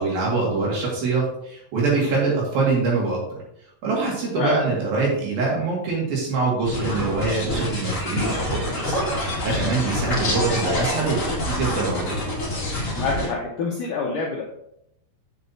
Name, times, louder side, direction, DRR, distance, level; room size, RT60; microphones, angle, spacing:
voice 1, 0.0-3.2 3.8-8.6 8.8-8.9 9.4-12.1, right 3 dB, 60° right, -4 dB, 3.6 m, -24 dB
sound 1, 6.6-13.3, left 1 dB, 35° left, 1.3 m, -26 dB
voice 2, 12.9-14.4, left 4 dB, 90° left, -2 dB, 1.8 m, -26 dB
8.3 x 7.2 x 2.8 m, 0.77 s
omnidirectional pair, 5.2 m